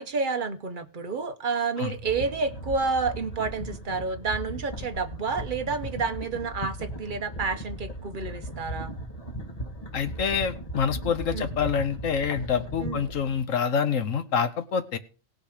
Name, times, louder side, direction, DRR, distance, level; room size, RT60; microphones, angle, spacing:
voice 1, 0.0-8.9 11.3-11.5 12.8-13.0, right 4 dB, 45° right, 9 dB, 1.0 m, -29 dB
sound 1, 1.9-13.4, equal, 30° left, 1.6 m, -37 dB
voice 2, 9.9-15.0, left 6 dB, 85° left, 10 dB, 1.4 m, -27 dB
17.5 x 6.2 x 5.0 m, 0.35 s
omnidirectional pair, 1.3 m